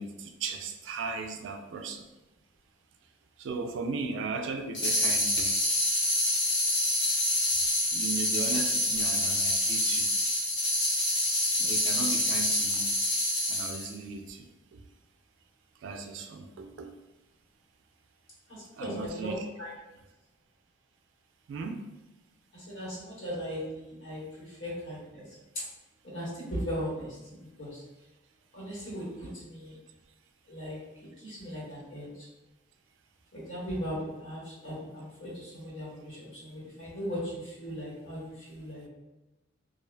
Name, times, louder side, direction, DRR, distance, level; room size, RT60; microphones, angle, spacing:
voice 1, 0.0-2.1 3.4-5.7 7.9-10.1 11.6-13.0 13.5-14.8 15.8-16.9 18.7-19.4 21.5-21.9, right 4 dB, 75° right, 6 dB, 0.3 m, -37 dB
sound 1, 4.7-13.9, left 1 dB, 65° left, 0.9 m, -27 dB
voice 2, 18.5-19.7 22.5-25.2 25.5-25.6 26.0-27.8 28.5-29.8 30.5-32.3 33.3-38.9, equal, 85° left, -7 dB, 1.4 m, -38 dB
2.4 x 2.4 x 2.2 m, 1.0 s
head